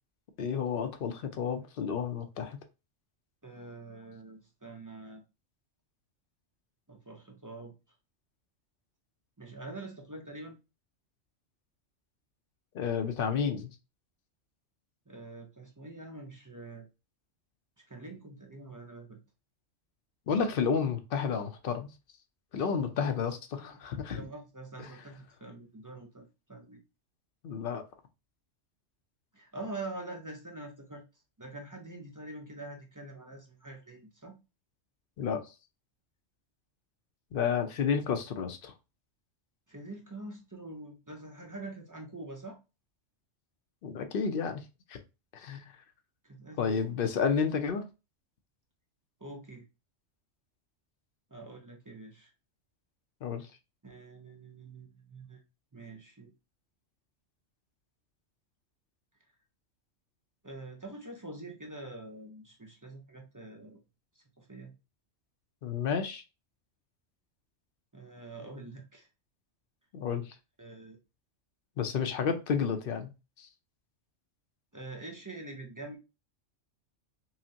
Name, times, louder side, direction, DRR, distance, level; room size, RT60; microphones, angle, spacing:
voice 1, 0.4-2.6 12.7-13.7 20.3-21.9 22.5-24.2 24.8-24.9 27.4-27.8 35.2-35.4 37.3-38.7 43.8-45.0 45.3-45.7 46.6-47.8 53.2-53.5 65.6-66.2 69.9-70.3 71.8-73.1 73.4-73.5, left 6 dB, 55° left, 0.7 m, -31 dB
voice 2, 3.4-5.2 6.9-7.7 9.4-10.6 15.1-16.9 17.9-19.2 22.8-23.0 23.6-23.8 24.1-26.8 29.3-31.0 31.4-34.4 39.7-42.6 46.2-46.7 49.2-49.7 51.3-52.3 53.8-55.4 55.7-56.3 60.4-63.8 64.2-64.7 67.9-69.1 70.6-71.0 74.7-76.0, right 2 dB, 25° right, 0.5 m, -45 dB
5.6 x 2.1 x 2.7 m
omnidirectional pair, 1.3 m